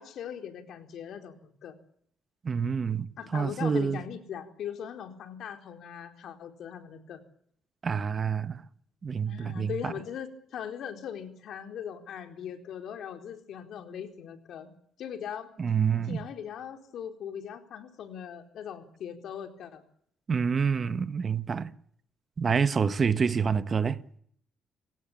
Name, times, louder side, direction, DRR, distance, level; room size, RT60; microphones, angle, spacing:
voice 1, 0.0-1.8 3.2-7.2 9.3-14.7 15.0-15.5 16.0-19.8, left 8 dB, 75° left, 4.1 m, -40 dB
voice 2, 2.4-4.0 7.8-8.6 9.0-9.9 15.6-16.2 20.3-21.7 22.4-24.0, right 6 dB, 40° right, 1.3 m, -27 dB
28.5 x 17.5 x 8.8 m
cardioid pair, 90°, 0 cm